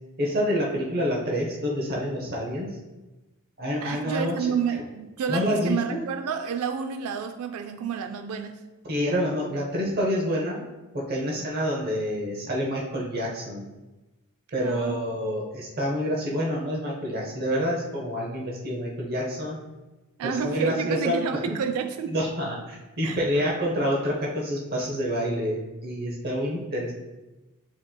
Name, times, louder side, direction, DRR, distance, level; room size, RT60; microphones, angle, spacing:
voice 1, 0.2-2.8 3.6-4.5 5.3-6.0 8.9-10.6 10.9-13.7 14.5-19.6 20.2-21.6 22.1-26.9, equal, 45° right, -2 dB, 0.7 m, -27 dB
voice 2, 3.8-8.6 14.6-15.0 20.2-22.1 23.0-23.2, right 7 dB, 70° right, 7 dB, 0.3 m, -29 dB
7.6 x 2.9 x 2.2 m, 1.1 s
head